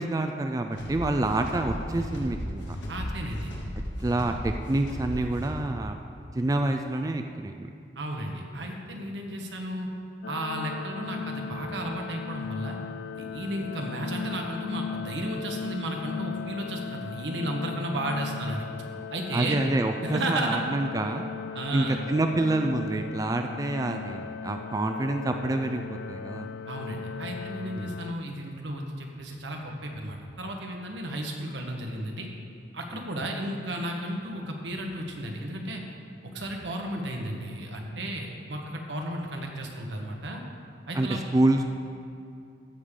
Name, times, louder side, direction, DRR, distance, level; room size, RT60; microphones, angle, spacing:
voice 1, 0.0-2.6 4.0-6.0 6.3-7.7 19.3-21.3 21.7-26.5 27.8-28.0 41.0-41.7, right 2 dB, 20° right, 5 dB, 0.3 m, -27 dB
sound 1, 0.7-5.8, equal, 85° left, 1.7 m, -35 dB
voice 2, 2.9-3.5 8.0-9.9 10.2-12.8 13.1-18.7 19.1-19.6 20.0-20.6 21.5-22.0 26.7-32.3 32.7-35.8 36.3-40.4 40.9-41.2, right 1 dB, 85° right, 1 dB, 1.3 m, -33 dB
sound 2, 10.2-28.1, left 6 dB, 70° left, 0.3 m, -38 dB
15.0 x 6.7 x 3.7 m, 2.5 s
head